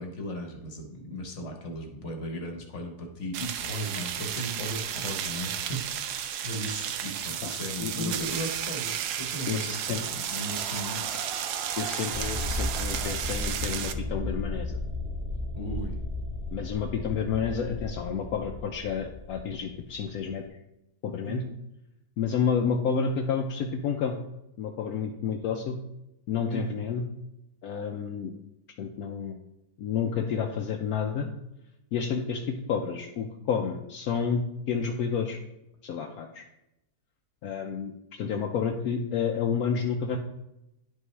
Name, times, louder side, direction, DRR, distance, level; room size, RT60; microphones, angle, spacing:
voice 1, 0.0-6.0 6.4-11.1 15.5-16.0 21.2-21.5 26.5-26.8, equal, 50° left, 2 dB, 1.4 m, -36 dB
sound 1, 3.3-13.9, right 9 dB, 80° right, 1.2 m, -33 dB
voice 2, 7.8-8.3 9.5-10.0 11.8-14.8 16.5-20.4 21.0-21.4 22.2-24.2 24.6-25.8 26.3-27.0 27.6-28.3 28.8-29.3 29.8-31.3 31.9-35.4 35.8-36.4 37.4-40.2, left 6 dB, 70° left, 3 dB, 1.0 m, -30 dB
sound 2, 8.9-13.2, right 5 dB, 50° right, 0.8 m, -42 dB
sound 3, 12.1-20.3, left 2 dB, 35° right, 2.8 m, -35 dB
10.5 x 5.5 x 3.2 m, 0.89 s
omnidirectional pair, 1.7 m